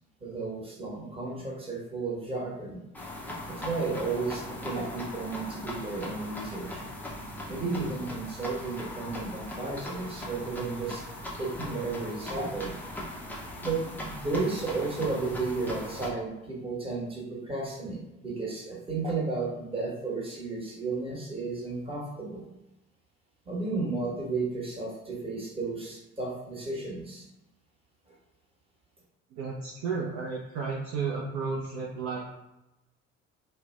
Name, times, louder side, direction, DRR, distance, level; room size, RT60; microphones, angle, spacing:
voice 1, 0.2-2.8 3.5-6.8 7.5-11.0 11.4-12.7 13.6-22.4 23.4-27.3 28.1-28.2, right 3 dB, 15° right, -4 dB, 1.1 m, -33 dB
sound 1, 2.9-16.1, left 1 dB, 5° left, 0.5 m, -39 dB
voice 2, 29.3-32.2, right 5 dB, 45° right, -3 dB, 0.5 m, -33 dB
2.5 x 2.0 x 3.3 m, 0.93 s
figure-of-eight pair, 55°, 40 cm